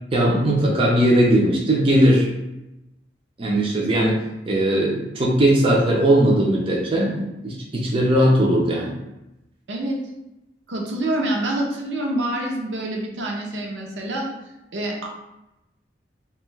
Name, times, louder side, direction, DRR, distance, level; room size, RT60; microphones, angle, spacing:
voice 1, 0.1-2.3 3.4-9.0, right 1 dB, 30° right, -3 dB, 0.4 m, -19 dB
voice 2, 9.7-10.0 10.7-14.3 14.7-15.2, right 1 dB, 80° right, 0 dB, 0.6 m, -26 dB
2.6 x 2.2 x 3.1 m, 0.93 s
head